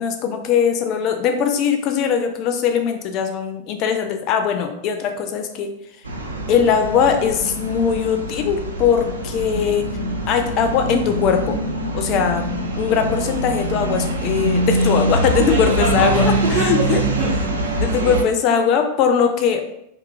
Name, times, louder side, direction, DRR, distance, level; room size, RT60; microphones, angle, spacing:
voice 1, 0.0-5.7 6.5-9.9 10.3-11.6 11.9-16.3 16.7-17.0 17.8-19.6, left 7 dB, 40° left, 6 dB, 0.3 m, -20 dB
sound 1, 6.0-18.2, right 1 dB, 75° right, 0.3 m, -23 dB
voice 2, 15.2-18.2, right 2 dB, 50° right, -8 dB, 0.7 m, -27 dB
2.6 x 2.3 x 2.4 m, 0.79 s
figure-of-eight pair, 90°, 0 cm